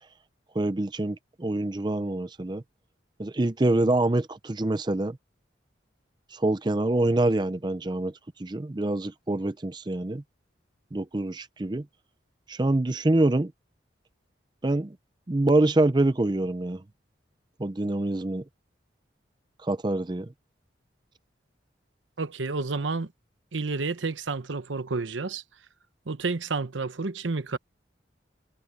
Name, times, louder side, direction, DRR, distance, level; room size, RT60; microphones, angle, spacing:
voice 1, 0.5-2.6 3.2-5.2 6.3-8.1 8.4-10.2 10.9-11.8 12.5-13.5 14.6-15.0 15.3-16.8 17.6-18.4 19.6-20.3, right 2 dB, 25° right, 0.5 m, -25 dB
voice 2, 22.2-23.1 23.5-25.4 26.1-27.6, right 3 dB, 85° right, 1.0 m, -30 dB
head